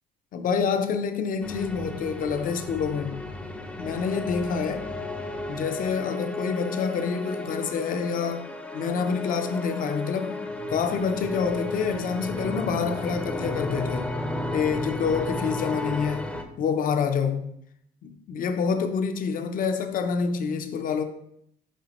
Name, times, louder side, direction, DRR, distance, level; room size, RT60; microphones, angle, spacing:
voice 1, 0.3-3.2 3.8-4.9 5.5-8.5 8.7-10.4 10.7-14.2 14.5-17.5 18.0-21.0, left 6 dB, 55° left, 0.7 m, -27 dB
sound 1, 1.4-16.4, left 1 dB, 5° left, 0.7 m, -33 dB
7.3 x 4.9 x 3.0 m
cardioid pair, 110°, 17 cm